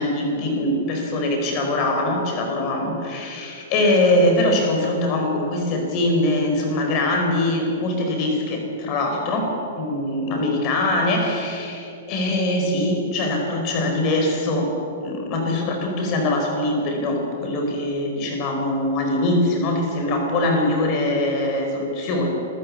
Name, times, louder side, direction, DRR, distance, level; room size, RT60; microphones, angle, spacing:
voice 1, 0.0-14.7 15.0-22.3, left 1 dB, 30° left, 2 dB, 4.8 m, -22 dB
27.5 x 14.0 x 8.6 m, 2.8 s
hypercardioid pair, 165°, 0 cm